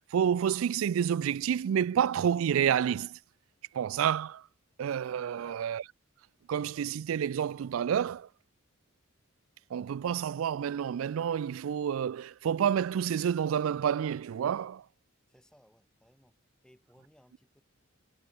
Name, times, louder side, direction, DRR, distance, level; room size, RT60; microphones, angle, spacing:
voice 1, 0.0-3.2 3.7-4.4 4.8-5.8 6.5-8.3 9.7-14.8, right 8 dB, 75° right, 0.3 m, -29 dB
voice 2, 15.3-16.4 16.6-17.6, equal, 5° left, 2.9 m, -62 dB
head